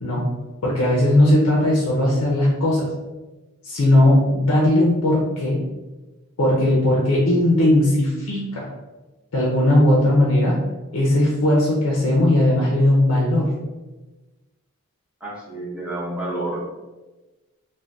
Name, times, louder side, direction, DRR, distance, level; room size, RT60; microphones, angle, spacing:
voice 1, 0.6-2.9 3.6-5.6 6.4-8.7 9.3-10.5 10.9-13.5, left 1 dB, 80° left, -4 dB, 0.6 m, -18 dB
voice 2, 15.2-16.6, right 2 dB, 5° right, -6 dB, 0.6 m, -29 dB
2.5 x 2.2 x 3.3 m, 1.1 s
head